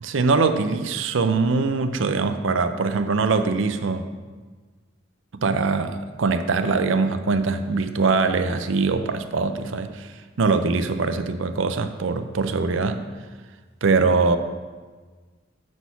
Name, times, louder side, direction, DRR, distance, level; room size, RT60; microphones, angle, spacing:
voice 1, 0.0-4.1 5.4-13.0 13.8-14.4, right 4 dB, 70° right, 8 dB, 0.5 m, -22 dB
6.2 x 6.0 x 6.9 m, 1.4 s
head